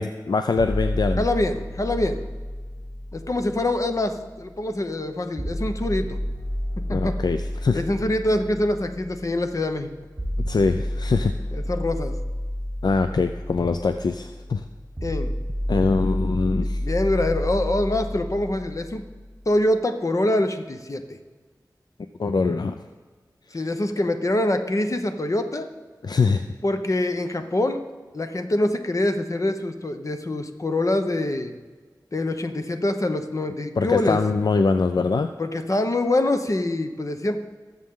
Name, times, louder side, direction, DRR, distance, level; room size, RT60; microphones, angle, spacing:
voice 1, 0.0-1.2 6.9-7.8 10.4-11.3 12.8-14.6 15.7-16.8 22.2-22.8 23.5-23.6 26.0-26.4 33.8-35.3, left 4 dB, 65° left, 8 dB, 0.4 m, -23 dB
sound 1, 0.6-4.6 5.4-19.4, equal, 15° right, 3.4 m, -30 dB
voice 2, 1.2-2.2 3.1-6.2 6.9-7.2 7.7-9.9 11.5-12.1 15.0-15.3 16.6-19.0 19.5-21.2 23.5-25.7 26.6-27.8 28.1-31.5 32.1-34.2 35.4-37.5, left 1 dB, 45° left, 7 dB, 1.0 m, -25 dB
19.5 x 7.3 x 3.8 m, 1.4 s
wide cardioid pair, 75°, 7 cm